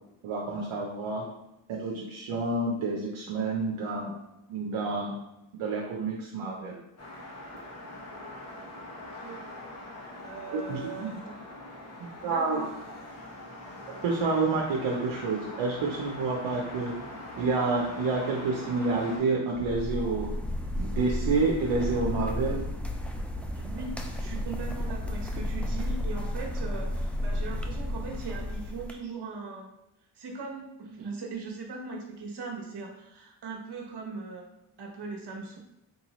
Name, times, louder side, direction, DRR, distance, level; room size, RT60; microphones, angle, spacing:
voice 1, 0.2-1.2 1.7-4.1 4.5-5.1 5.5-6.8 10.7-11.1 12.2-12.6 14.0-16.9 17.4-20.3 20.8-22.6, right 3 dB, 80° right, -2 dB, 0.7 m, -29 dB
sound 1, 7.0-19.2, left 1 dB, 35° left, 1.1 m, -43 dB
voice 2, 9.1-9.5 10.2-11.4 12.2-12.8 23.5-29.7 30.1-34.5 34.8-35.6, right 4 dB, 55° right, 0 dB, 1.1 m, -39 dB
sound 2, 19.6-28.9, left 1 dB, 5° left, 0.4 m, -32 dB
4.5 x 2.6 x 3.0 m, 0.88 s
cardioid pair, 60°, 47 cm